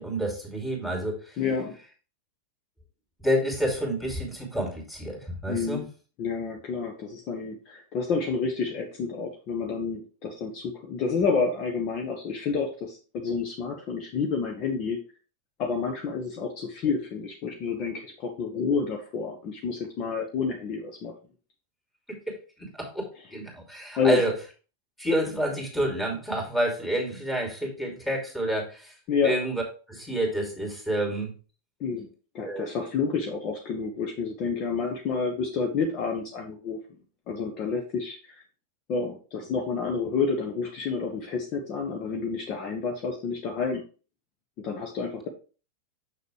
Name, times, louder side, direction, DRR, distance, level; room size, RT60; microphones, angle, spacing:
voice 1, 0.0-1.4 3.2-5.8 22.1-24.3 25.0-28.9 29.2-29.6 29.9-31.3 32.5-32.7, right 1 dB, 5° left, 1 dB, 2.8 m, -29 dB
voice 2, 1.4-1.7 5.5-5.8 6.2-15.0 15.6-21.1 24.0-24.2 29.1-29.3 31.8-32.1 32.3-36.8 37.3-38.4 38.9-43.8 44.6-45.3, left 5 dB, 40° left, 2 dB, 1.2 m, -29 dB
6.8 x 6.4 x 3.3 m, 0.36 s
figure-of-eight pair, 90°, 0 cm